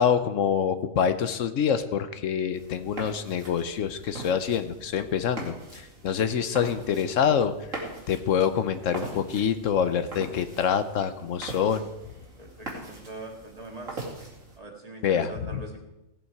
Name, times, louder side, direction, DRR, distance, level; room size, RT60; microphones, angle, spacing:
voice 1, 0.0-11.9 15.0-15.6, left 8 dB, 75° left, 11 dB, 1.1 m, -26 dB
sound 1, 2.5-14.6, right 2 dB, 80° right, 2.9 m, -42 dB
voice 2, 12.4-14.1 14.6-15.8, right 2 dB, 30° right, 1 dB, 1.9 m, -42 dB
17.5 x 8.0 x 4.7 m, 0.96 s
omnidirectional pair, 1.3 m